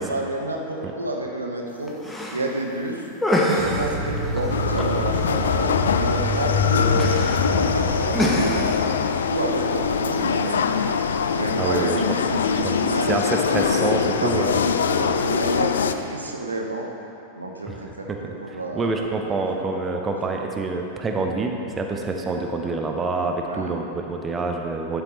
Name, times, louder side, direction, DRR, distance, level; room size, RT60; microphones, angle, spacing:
voice 1, 0.0-1.9 2.3-3.0 3.5-8.9 9.3-10.7 11.3-13.1 13.8-16.9 17.4-19.7 19.9-20.1 23.4-23.7, right 2 dB, 80° right, 1 dB, 0.8 m, -29 dB
sound 1, 1.7-13.3, equal, 5° left, 1.0 m, -30 dB
sound 2, 3.6-9.1, left 3 dB, 50° right, 1.8 m, -26 dB
sound 3, 4.5-15.9, left 6 dB, 65° left, 0.3 m, -23 dB
voice 2, 11.6-12.0 12.6-12.7 13.0-14.6 17.6-17.8 18.1-25.0, right 3 dB, 20° right, 2 dB, 0.6 m, -26 dB
11.5 x 7.0 x 3.0 m, 2.9 s
figure-of-eight pair, 90°, 0 cm